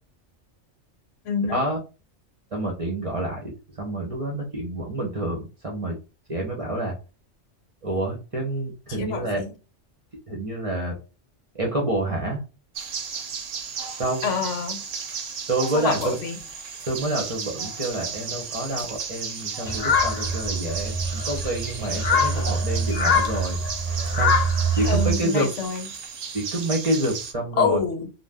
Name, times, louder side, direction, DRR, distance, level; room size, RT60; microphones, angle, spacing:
voice 1, 1.2-1.7 9.0-9.5 14.2-14.8 15.7-16.4 24.8-25.9 27.6-28.1, left 6 dB, 80° left, 1.0 m, -26 dB
voice 2, 2.5-6.0 6.3-6.9 7.8-9.4 10.3-11.0 11.5-12.4 14.0-14.4 15.5-16.1 16.9-23.6 24.1-24.5 24.8-25.5 26.3-27.8, right 1 dB, 35° right, 0.7 m, -28 dB
sound 1, 12.7-27.3, right 6 dB, 85° right, 1.0 m, -34 dB
sound 2, 19.7-25.1, left 1 dB, 45° left, 0.5 m, -23 dB
2.5 x 2.2 x 3.4 m
omnidirectional pair, 1.3 m